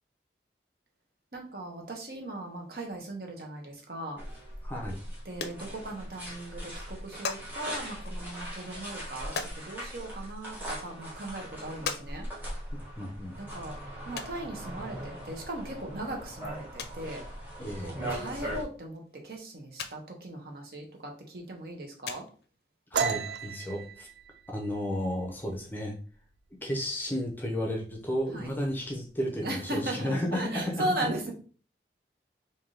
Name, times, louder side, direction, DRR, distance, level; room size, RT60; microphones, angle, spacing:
voice 1, 1.3-4.2 5.2-12.3 13.4-13.8 14.1-17.2 17.8-22.2 28.3-28.5 29.4-31.3, right 1 dB, 60° right, 1 dB, 1.0 m, -38 dB
sound 1, 4.2-18.6, right 1 dB, 10° right, 1.1 m, -40 dB
voice 2, 4.6-5.0 12.7-13.4 17.6-18.1 22.9-24.1 24.5-26.0 26.6-30.9, equal, 10° left, 1 dB, 0.6 m, -33 dB
sound 2, 4.9-5.0 5.3-6.2 6.5-6.6 6.8-7.5 7.9-9.6 10.4-10.5 11.0-11.1 11.9-12.1 12.3-12.4 14.2-14.3 15.5-15.7 16.0-16.1 16.4-16.5 16.8-17.1 18.4-18.5 18.9-19.0 19.8-20.0 20.2-20.3 21.6-21.7 22.0-22.5 23.4-23.5 23.7-23.8 24.0-24.1, left 5 dB, 65° left, 0.5 m, -38 dB
sound 3, 22.9-26.4 26.7-27.0 27.4-27.9 28.2-29.0, right 6 dB, 80° right, 0.4 m, -34 dB
3.5 x 2.6 x 3.7 m, 0.40 s
head